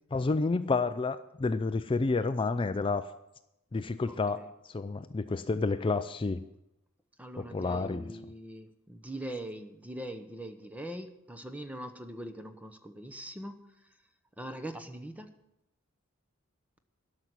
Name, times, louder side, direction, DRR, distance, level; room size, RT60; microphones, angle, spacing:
voice 1, 0.1-3.1 3.7-6.4 7.4-8.1, left 3 dB, 25° left, 11 dB, 0.4 m, -30 dB
voice 2, 4.1-4.5 7.2-13.6 14.4-15.3, right 1 dB, 5° right, 8 dB, 0.8 m, -42 dB
12.5 x 6.1 x 9.4 m, 0.87 s
head